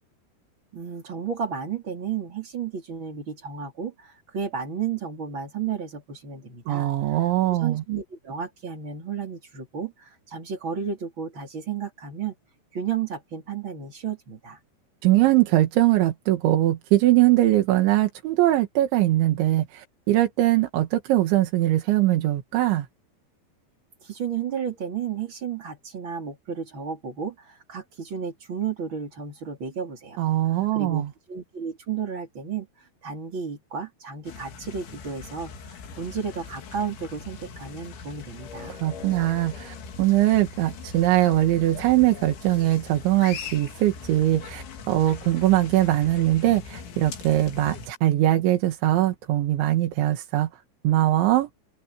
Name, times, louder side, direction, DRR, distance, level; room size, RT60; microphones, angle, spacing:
voice 1, 0.7-6.9 7.5-12.3 12.7-14.6 24.0-30.2 30.7-32.7 33.0-38.7, right 7 dB, 30° right, 3.8 m, -33 dB
voice 2, 6.7-7.8 15.0-22.9 30.2-31.1 38.7-50.5 50.8-51.5, right 15 dB, 90° right, 4.1 m, -21 dB
sound 1, 34.2-47.9, left 5 dB, 90° left, 5.4 m, -41 dB
omnidirectional pair, 5.2 m